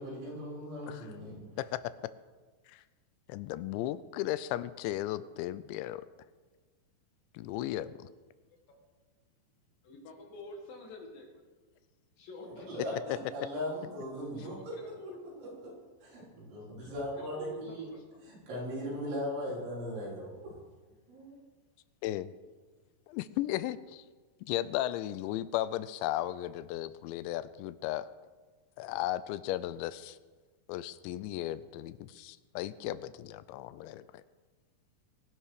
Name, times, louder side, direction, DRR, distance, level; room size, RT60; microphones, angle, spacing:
voice 1, 0.0-1.4 12.4-14.7 15.0-15.1 15.4-15.7 16.0-17.9 18.2-20.3 21.1-21.4, equal, 90° right, -7 dB, 7.9 m, -38 dB
voice 2, 3.3-6.0 7.3-7.9 22.0-22.3 23.1-24.0 24.5-28.1 28.8-30.2 30.7-34.2, left 14 dB, 85° left, 15 dB, 2.8 m, -35 dB
voice 3, 9.8-11.3 12.2-13.1 14.4-15.2 16.8-18.2, left 2 dB, 55° left, 2 dB, 3.4 m, -49 dB
22.0 x 11.5 x 4.9 m, 1.4 s
omnidirectional pair, 5.2 m